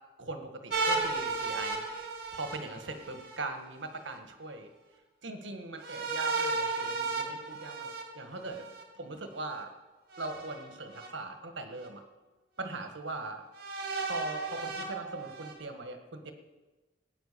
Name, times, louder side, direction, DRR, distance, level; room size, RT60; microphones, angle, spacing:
voice 1, 0.2-4.7 5.2-8.6 8.9-9.7 10.2-12.0 12.6-13.4 14.1-16.3, right 2 dB, 75° right, 6 dB, 1.7 m, -40 dB
sound 1, 0.7-3.4 5.8-8.8 10.1-11.1 11.8-11.9 13.5-15.5, right 3 dB, 55° right, 2.5 m, -34 dB
16.5 x 9.4 x 6.8 m, 1.2 s
head